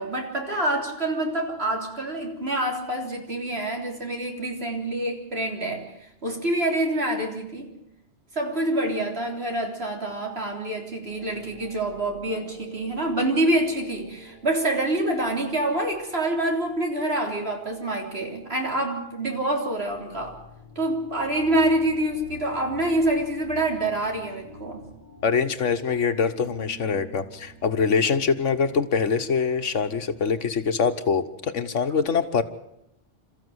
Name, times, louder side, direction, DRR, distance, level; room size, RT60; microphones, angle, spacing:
voice 1, 0.0-5.9 6.2-7.7 8.3-20.4 20.8-24.9, right 1 dB, 55° right, 2 dB, 4.0 m, -26 dB
sound 1, 11.0-30.4, right 1 dB, 40° right, 5.3 m, -48 dB
voice 2, 25.2-32.4, left 5 dB, 80° left, 8 dB, 1.6 m, -24 dB
28.5 x 14.0 x 8.0 m, 0.81 s
omnidirectional pair, 1.2 m